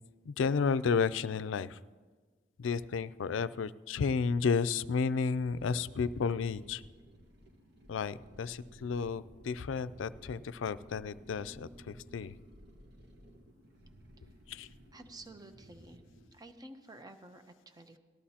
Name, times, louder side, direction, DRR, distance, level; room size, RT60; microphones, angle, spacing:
voice 1, 0.3-1.8 2.6-6.8 7.9-12.4 14.5-14.7, left 5 dB, 85° left, 15 dB, 0.4 m, -32 dB
sound 1, 5.3-16.3, equal, 60° right, 1.4 m, -55 dB
voice 2, 14.9-16.0 16.3-18.0, right 2 dB, 20° right, 7 dB, 0.8 m, -51 dB
18.5 x 13.5 x 2.9 m, 1.4 s
head